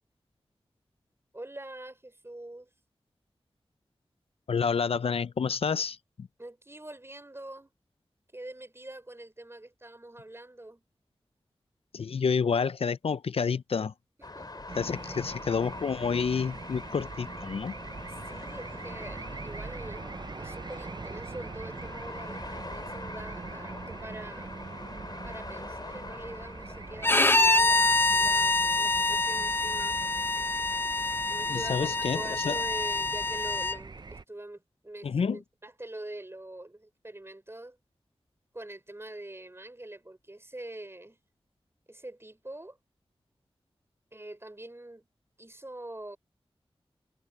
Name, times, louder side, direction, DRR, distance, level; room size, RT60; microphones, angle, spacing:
voice 1, 1.3-2.7 6.4-7.7 8.3-10.8 14.3-14.7 18.1-24.5 25.2-30.0 31.3-37.8 38.5-41.2 41.9-42.8 44.1-45.1 45.4-46.2, right 1 dB, 25° right, 5.7 m, -44 dB
voice 2, 4.5-6.3 11.9-13.9 14.8-17.7 31.5-32.6 35.0-35.4, left 6 dB, 75° left, 0.5 m, -29 dB
sound 1, 14.2-32.4, left 2 dB, 45° left, 2.5 m, -45 dB
sound 2, 14.7-34.2, right 4 dB, 45° right, 0.7 m, -43 dB
Bowed string instrument, 27.0-33.8, left 2 dB, 20° left, 0.7 m, -26 dB
cardioid pair, 50°, 10 cm